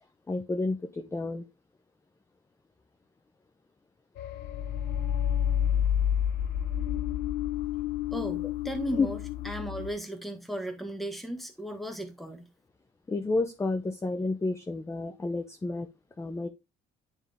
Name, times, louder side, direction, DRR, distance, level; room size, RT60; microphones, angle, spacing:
voice 1, 0.3-1.4 8.9-9.1 13.1-15.9 16.2-16.5, left 3 dB, 15° left, 0.6 m, -30 dB
sound 1, 4.2-9.9, left 10 dB, 75° left, 0.9 m, -29 dB
voice 2, 8.1-9.2 9.4-12.5, right 1 dB, ahead, 1.4 m, -36 dB
9.8 x 3.5 x 3.5 m
cardioid pair, 110°, 17 cm